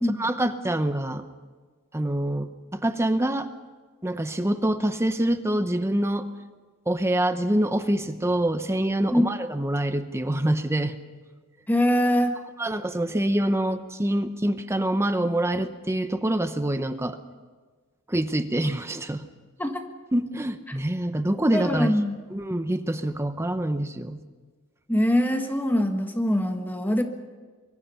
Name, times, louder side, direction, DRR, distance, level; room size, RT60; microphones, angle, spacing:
voice 1, 0.2-1.2 1.9-3.5 4.0-6.3 6.9-11.0 12.6-17.2 18.1-19.2 20.1-21.9 22.3-24.2, right 1 dB, 15° right, 9 dB, 0.8 m, -25 dB
voice 2, 11.7-12.3 19.6-19.8 21.5-22.2 24.9-27.0, equal, 10° left, 5 dB, 1.4 m, -23 dB
25.0 x 23.0 x 5.7 m, 1.4 s
head